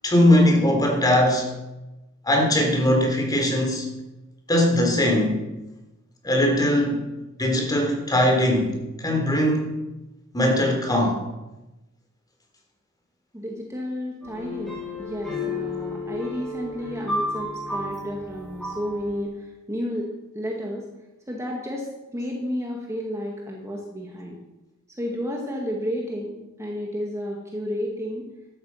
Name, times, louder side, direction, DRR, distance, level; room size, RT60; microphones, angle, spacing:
voice 1, 0.0-1.5 2.3-3.9 4.5-5.5 6.2-7.0 7.4-9.7 10.3-11.2, left 1 dB, 20° left, 2 dB, 3.7 m, -20 dB
voice 2, 13.3-20.1 20.3-20.9 21.3-24.4 24.9-28.3, equal, 15° right, -1 dB, 1.9 m, -31 dB
sound 1, 14.2-19.2, left 2 dB, ahead, 6.4 m, -32 dB
15.5 x 12.5 x 5.7 m, 1.0 s
head